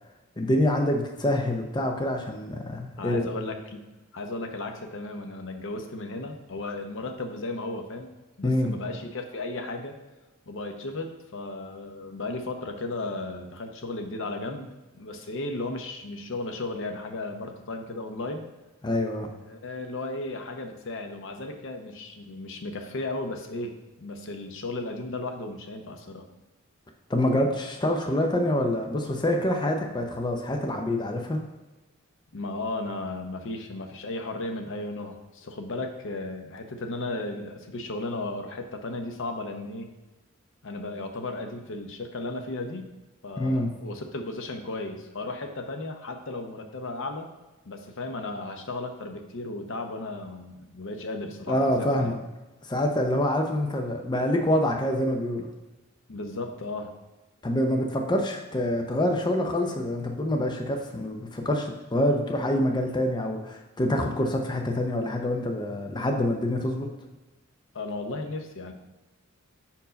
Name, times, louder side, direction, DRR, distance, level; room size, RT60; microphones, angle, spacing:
voice 1, 0.4-3.3 8.4-8.7 18.8-19.3 27.1-31.4 43.4-43.7 51.5-52.2 52.7-55.5 57.4-66.9, left 1 dB, 20° left, 3 dB, 0.5 m, -26 dB
voice 2, 3.0-3.8 4.1-8.1 8.4-10.0 10.5-18.4 19.5-26.3 32.3-39.9 40.6-42.9 43.2-47.3 47.7-52.1 56.1-56.9 67.7-68.7, left 2 dB, 65° left, 5 dB, 0.8 m, -35 dB
5.3 x 4.6 x 5.1 m, 1.1 s
head